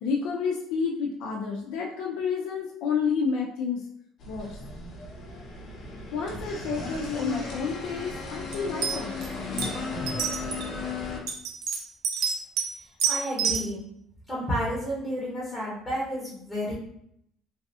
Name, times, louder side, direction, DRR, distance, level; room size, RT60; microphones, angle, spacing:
voice 1, 0.0-3.8 4.3-4.6 6.1-9.2, left 5 dB, 80° left, -1 dB, 0.4 m, -30 dB
Coffee machine, 4.2-11.2, left 3 dB, 45° left, 0.7 m, -35 dB
sound 1, 8.5-8.6 8.8-9.3 9.6-9.7 10.1-10.6 11.3-12.7 13.0-13.6, right 7 dB, 85° right, 0.7 m, -27 dB
voice 2, 13.0-13.8 14.3-16.7, equal, 10° left, -7 dB, 0.9 m, -31 dB
3.1 x 2.4 x 2.6 m, 0.72 s
cardioid pair, 140°, 0 cm